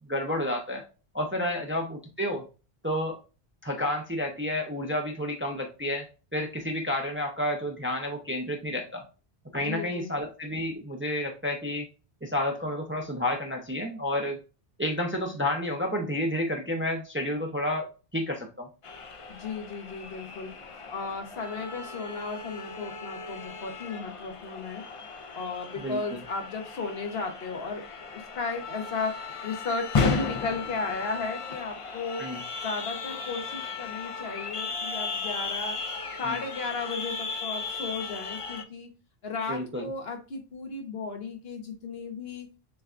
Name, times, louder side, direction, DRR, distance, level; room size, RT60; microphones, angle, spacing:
voice 1, 0.1-0.8 1.1-2.4 2.8-3.2 3.6-6.1 6.3-9.0 9.5-11.9 12.2-14.4 14.8-17.9 18.1-18.7 25.8-26.0 32.2-32.4 36.2-36.4 39.5-39.9, left 1 dB, 15° right, 0.5 m, -30 dB
voice 2, 9.5-10.1 19.3-20.5 20.9-24.8 25.3-29.2 29.4-32.3 32.6-35.8 36.2-38.9 39.2-42.5, left 4 dB, 70° left, 1.1 m, -35 dB
sound 1, 18.8-38.6, left 4 dB, 45° left, 0.4 m, -35 dB
6.6 x 2.3 x 2.4 m
omnidirectional pair, 1.1 m